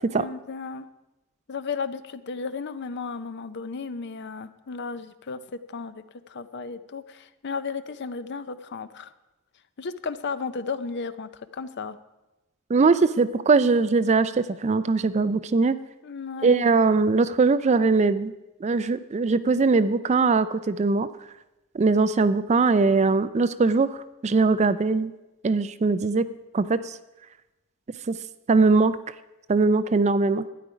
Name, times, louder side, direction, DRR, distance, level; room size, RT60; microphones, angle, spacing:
voice 1, 0.1-0.9 1.5-9.1 9.8-12.0 16.0-16.7, left 4 dB, 50° left, 13 dB, 0.5 m, -34 dB
voice 2, 12.7-15.8 16.4-18.3 18.6-21.1 21.7-23.9 24.2-25.1 25.4-26.3 26.5-27.0 28.1-28.2 28.5-29.0 29.5-30.4, right 4 dB, 30° right, 13 dB, 0.4 m, -21 dB
12.5 x 9.7 x 5.0 m, 1.0 s
head